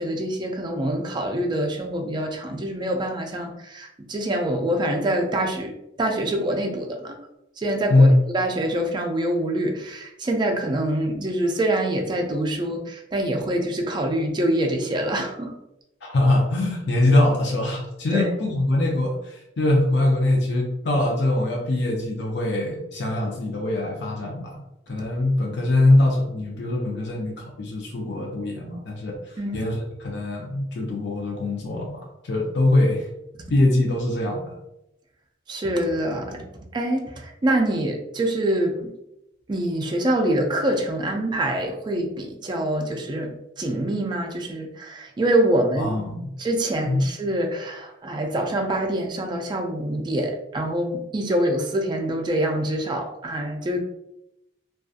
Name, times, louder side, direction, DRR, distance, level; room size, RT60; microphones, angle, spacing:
voice 1, 0.0-5.7 6.0-7.2 7.6-8.1 8.3-15.6 18.1-18.3 29.4-29.6 35.5-36.4 36.7-38.9 39.5-45.9 46.4-53.8, right 1 dB, 25° right, 3 dB, 0.3 m, -25 dB
voice 2, 16.0-33.1 33.5-34.5 45.8-46.3 46.9-47.0, left 2 dB, 65° left, -1 dB, 0.5 m, -22 dB
2.6 x 2.3 x 2.3 m, 0.85 s
head